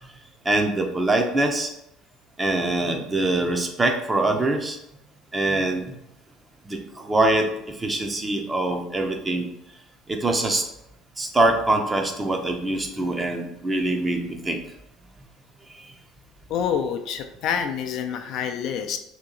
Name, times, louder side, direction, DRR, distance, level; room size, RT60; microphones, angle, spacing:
voice 1, 0.4-1.7 2.4-4.8 5.3-5.9 6.7-9.5 10.1-10.6 11.2-14.6, right 2 dB, 20° right, 3 dB, 0.6 m, -24 dB
voice 2, 16.5-19.0, left 8 dB, 60° left, 6 dB, 0.4 m, -27 dB
2.9 x 2.7 x 3.8 m, 0.82 s
supercardioid pair, 90°, 0 cm